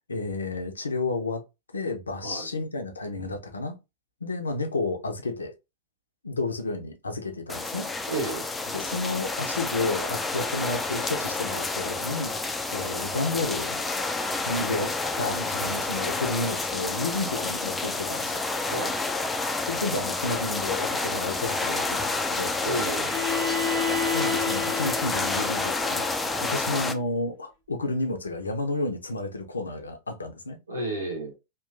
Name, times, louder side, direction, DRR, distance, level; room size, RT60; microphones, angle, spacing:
voice 1, 0.0-1.4 1.7-3.8 4.2-5.5 6.2-7.9 8.7-13.8 14.4-18.4 19.7-22.5 23.8-26.1 26.4-30.6, left 2 dB, 75° left, 0.5 m, -31 dB
sound 1, 7.5-26.9, left 3 dB, 10° left, 0.3 m, -29 dB
voice 2, 8.1-8.5 18.7-19.0 22.6-23.1 30.7-31.3, right 2 dB, 75° right, 0.5 m, -31 dB
Bowed string instrument, 23.0-26.9, left 5 dB, 40° right, 1.0 m, -31 dB
3.0 x 2.3 x 2.3 m
figure-of-eight pair, 90°, 0 cm